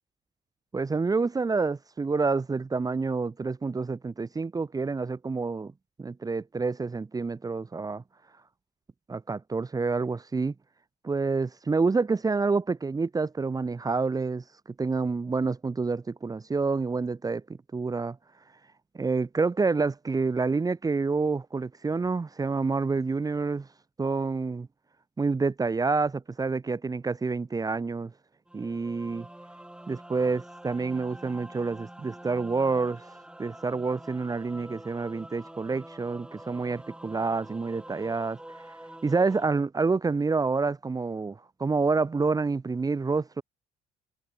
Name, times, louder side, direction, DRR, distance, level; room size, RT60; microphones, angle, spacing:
voice 1, 0.7-5.7 6.0-8.0 9.1-10.5 11.0-14.4 14.8-17.4 17.7-18.2 18.9-23.7 24.0-24.7 25.2-28.1 28.5-29.3 29.9-38.7 39.0-43.4, right 4 dB, 20° right, 1.9 m, -28 dB
sound 1, 28.5-39.5, right 1 dB, 5° right, 4.6 m, -46 dB
cardioid pair, 110°, 17 cm